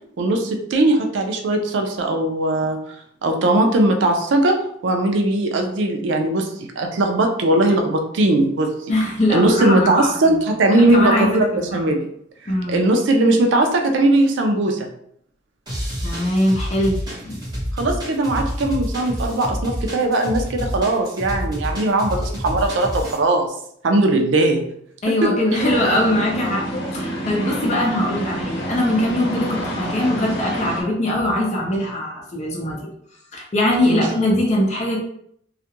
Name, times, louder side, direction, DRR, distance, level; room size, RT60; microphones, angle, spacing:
voice 1, 0.2-3.0 3.2-4.6 4.8-6.5 6.8-8.7 9.3-12.1 12.7-14.9 17.8-23.5 23.8-24.6 25.2-25.3 33.8-34.0, right 2 dB, 85° right, 4 dB, 0.4 m, -19 dB
voice 2, 8.9-10.4 10.7-11.9 12.5-12.8 16.0-17.4 25.0-32.8 33.3-35.0, left 1 dB, 40° left, -2 dB, 0.6 m, -21 dB
sound 1, 15.7-23.2, equal, 20° right, 0.9 m, -28 dB
sound 2, 25.6-30.8, equal, 90° left, 0.7 m, -28 dB
2.3 x 2.1 x 2.8 m, 0.68 s
head